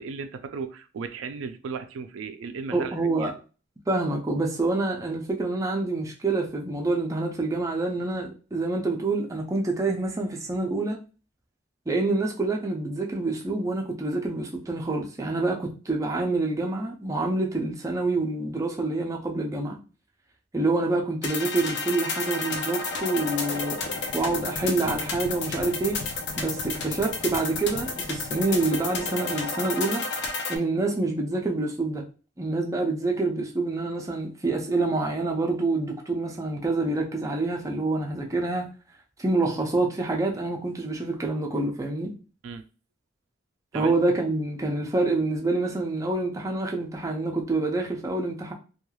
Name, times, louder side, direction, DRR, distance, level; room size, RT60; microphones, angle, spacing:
voice 1, 0.0-3.3 42.4-42.6 43.7-43.9, right 5 dB, 85° right, 0.3 m, -36 dB
voice 2, 2.7-3.3 3.9-11.0 11.9-19.8 20.5-23.8 24.1-26.0 26.4-30.0 30.5-32.0 32.4-38.7 39.2-42.1 43.7-48.5, right 2 dB, 15° right, 0.4 m, -27 dB
sound 1, 21.2-30.6, left 3 dB, 60° left, 0.5 m, -31 dB
3.0 x 2.3 x 2.3 m
head